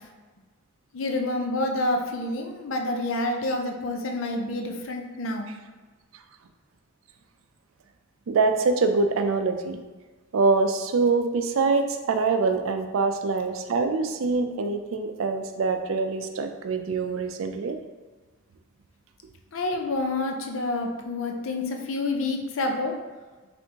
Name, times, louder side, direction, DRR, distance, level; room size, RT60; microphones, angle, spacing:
voice 1, 0.9-5.5 19.5-23.0, left 2 dB, 75° left, 3 dB, 0.5 m, -28 dB
voice 2, 8.3-9.8 10.3-17.8, right 4 dB, 80° right, 6 dB, 0.4 m, -24 dB
4.4 x 3.4 x 2.8 m, 1.3 s
head